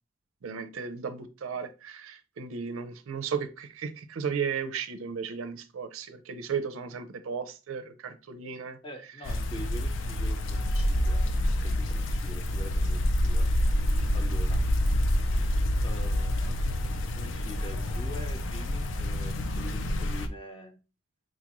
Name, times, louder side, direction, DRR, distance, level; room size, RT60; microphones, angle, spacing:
voice 1, 0.4-8.8, right 6 dB, 90° right, 9 dB, 0.5 m, -35 dB
voice 2, 8.8-11.3 11.6-13.5 14.1-14.6 15.8-16.7 17.1-20.7, left 1 dB, 25° left, 3 dB, 0.6 m, -44 dB
sound 1, 9.2-20.3, left 1 dB, 65° left, 0.4 m, -27 dB
3.9 x 2.5 x 2.9 m, 0.31 s
head